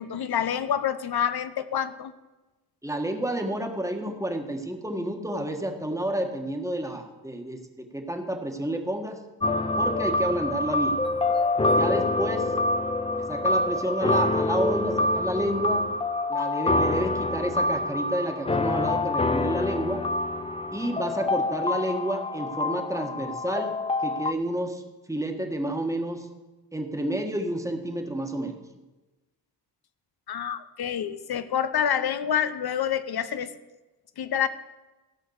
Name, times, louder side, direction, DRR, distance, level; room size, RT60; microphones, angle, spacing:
voice 1, 0.0-2.1 30.3-33.5 34.2-34.5, left 8 dB, 65° left, 13 dB, 0.8 m, -27 dB
voice 2, 2.8-9.2 9.8-11.0 11.8-12.5 13.2-15.8 16.3-20.0 20.7-23.7 24.0-24.8 25.1-26.3 26.7-28.6, right 1 dB, 10° right, 4 dB, 1.5 m, -30 dB
sound 1, 9.4-24.3, left 2 dB, 15° left, 0.4 m, -26 dB
15.0 x 5.7 x 8.0 m, 1.1 s
wide cardioid pair, 95°, 40 cm